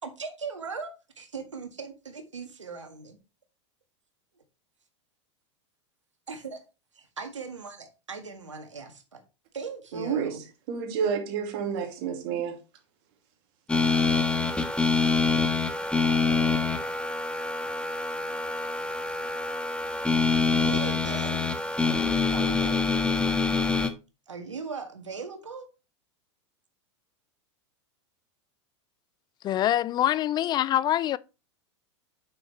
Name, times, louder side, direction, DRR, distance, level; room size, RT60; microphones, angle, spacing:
voice 1, 0.0-3.2 6.3-6.6 6.9-9.2 9.5-10.4 20.5-21.5 22.3-22.8 24.3-25.7, right 5 dB, 85° right, 1.8 m, -39 dB
voice 2, 9.9-12.6, right 7 dB, 55° right, 2.5 m, -30 dB
sound 1, 13.7-23.9, left 4 dB, 5° left, 1.3 m, -25 dB
voice 3, 29.4-31.2, left 12 dB, 30° left, 0.3 m, -24 dB
9.2 x 6.7 x 3.2 m
hypercardioid pair, 90°, 15 cm